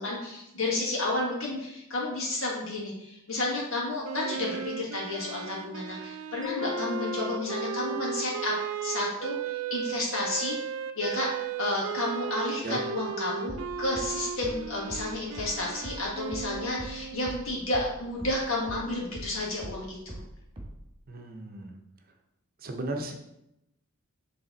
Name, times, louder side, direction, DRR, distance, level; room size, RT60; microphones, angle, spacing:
voice 1, 0.0-8.5 8.8-10.6 11.0-11.3 11.6-20.2, left 2 dB, 70° left, -4 dB, 1.9 m, -31 dB
Wind instrument woodwind instrument, 4.0-17.4, right 8 dB, 80° right, 0.4 m, -36 dB
Mallet percussion, 6.4-9.0, left 18 dB, 25° left, 0.5 m, -40 dB
sound 1, 13.5-18.4 18.7-20.9, right 1 dB, 25° right, 1.4 m, -42 dB
voice 2, 21.1-21.8 22.6-23.1, right 2 dB, 45° right, 4 dB, 0.8 m, -35 dB
6.9 x 3.5 x 4.0 m, 0.85 s
head